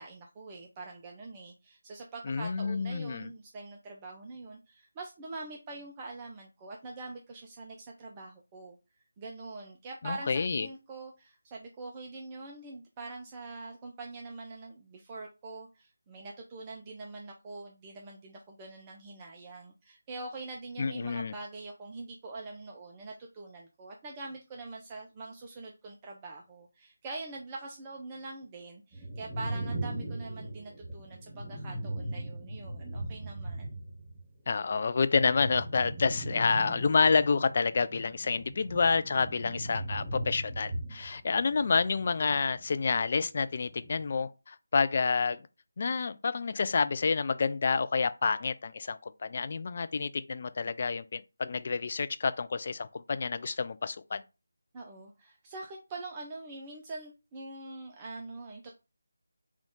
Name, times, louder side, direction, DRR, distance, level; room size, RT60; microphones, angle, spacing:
voice 1, 0.0-8.8 9.2-33.8 54.7-58.7, right 3 dB, 20° right, 0.5 m, -44 dB
voice 2, 2.3-3.3 10.0-10.7 20.8-21.3 34.5-45.4 45.8-54.2, left 4 dB, 40° left, 0.3 m, -29 dB
sound 1, 28.9-34.2 34.5-43.1 43.4-44.1, right 1 dB, 5° right, 1.0 m, -39 dB
3.6 x 2.4 x 3.6 m
figure-of-eight pair, 160°, 0 cm